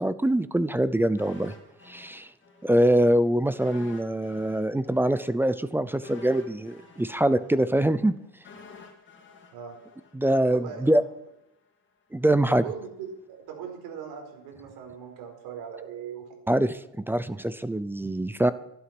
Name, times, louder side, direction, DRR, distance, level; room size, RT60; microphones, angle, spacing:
voice 1, 0.0-1.5 1.9-2.3 2.6-8.1 10.1-11.0 12.1-12.6 16.5-18.5, right 1 dB, 5° right, 14 dB, 0.5 m, -24 dB
sound 1, 1.2-2.8 3.1-3.2 3.6-10.7 11.0-11.1, left 4 dB, 35° left, 2.7 m, -50 dB
voice 2, 10.5-10.9 12.5-16.3, right 7 dB, 80° right, 2 dB, 4.8 m, -39 dB
13.0 x 11.5 x 6.1 m, 0.83 s
cardioid pair, 145°, 36 cm